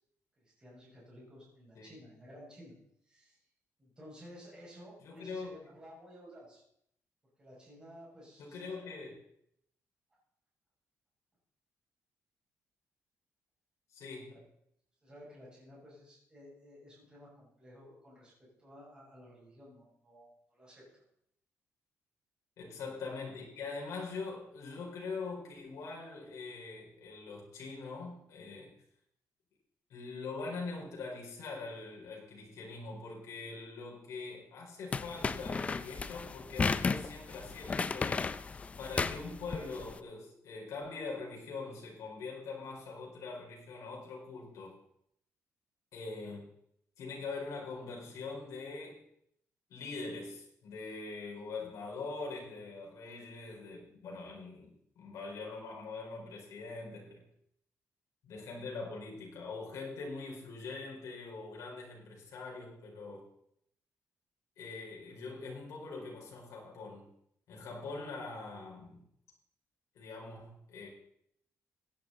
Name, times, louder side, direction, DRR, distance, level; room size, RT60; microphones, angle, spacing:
voice 1, 0.4-2.8 3.0-3.4 3.8-6.6 7.4-8.6 15.0-18.3 18.6-20.8 22.8-23.0, equal, 15° right, -6 dB, 6.5 m, -54 dB
voice 2, 5.0-5.5 8.4-9.1 13.9-14.4 22.6-28.7 29.9-44.7 45.9-46.5 47.0-49.0 49.7-57.2 58.2-63.3 64.6-67.1 67.5-69.0 69.9-70.9, left 3 dB, 65° left, -2 dB, 4.8 m, -43 dB
sound 1, 34.9-39.9, left 4 dB, 25° left, 0.4 m, -34 dB
16.5 x 10.5 x 4.1 m, 0.72 s
cardioid pair, 170°, 6 cm